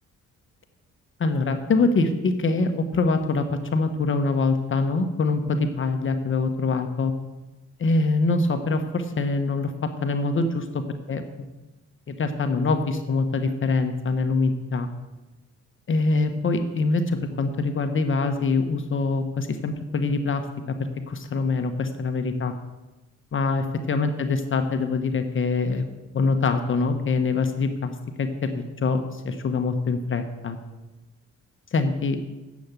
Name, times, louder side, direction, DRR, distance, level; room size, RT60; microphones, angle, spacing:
voice 1, 1.2-7.1 7.8-9.7 10.0-10.6 11.1-11.2 12.1-14.9 15.9-20.4 20.7-22.5 23.3-25.8 26.1-27.9 28.2-30.6 31.7-32.2, left 3 dB, 40° left, 7 dB, 1.1 m, -24 dB
8.4 x 7.2 x 8.0 m, 1.1 s
cardioid pair, 90°, 30 cm